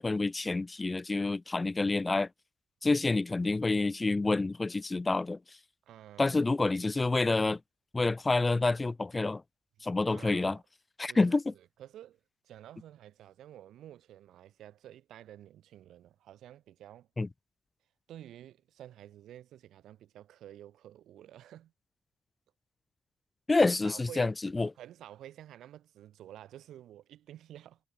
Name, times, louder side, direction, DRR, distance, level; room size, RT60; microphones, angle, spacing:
voice 1, 0.0-2.3 2.8-5.4 6.2-7.6 7.9-9.4 9.8-10.6 11.0-11.5 17.2-17.3 23.5-24.7, left 3 dB, 20° left, 0.3 m, -28 dB
voice 2, 5.9-6.8 10.1-10.6 11.1-17.1 18.1-21.7 23.6-24.3 24.8-27.8, right 12 dB, 85° right, 7.5 m, -51 dB
cardioid pair, 120°, 0 cm